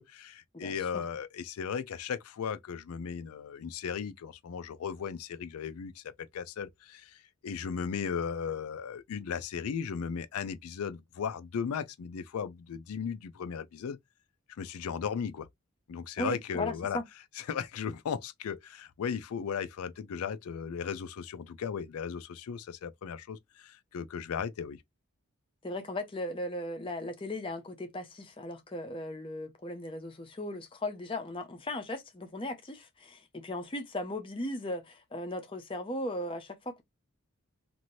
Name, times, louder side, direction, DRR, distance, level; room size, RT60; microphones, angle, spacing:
voice 1, 0.0-14.0 14.5-15.5 15.9-17.0 17.4-24.8, left 7 dB, 90° left, 0.4 m, -36 dB
voice 2, 0.5-1.0 16.2-17.0 25.6-36.8, left 1 dB, 25° left, 0.5 m, -37 dB
2.7 x 2.6 x 3.0 m
head